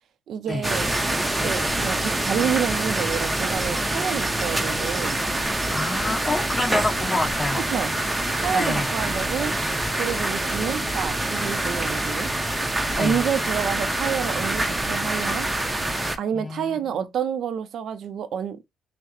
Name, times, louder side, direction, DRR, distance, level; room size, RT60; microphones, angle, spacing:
voice 1, 0.3-0.9 1.4-5.2 7.7-7.9 8.4-9.5 9.9-12.3 13.0-15.5 16.2-18.6, right 8 dB, 70° right, 0.5 m, -28 dB
sound 1, 0.6-16.2, right 1 dB, 15° right, 0.7 m, -25 dB
voice 2, 5.7-7.6 8.5-8.9 12.9-13.2 16.3-17.0, left 2 dB, 20° left, 1.5 m, -27 dB
5.6 x 2.1 x 3.0 m
cardioid pair, 90°, 0 cm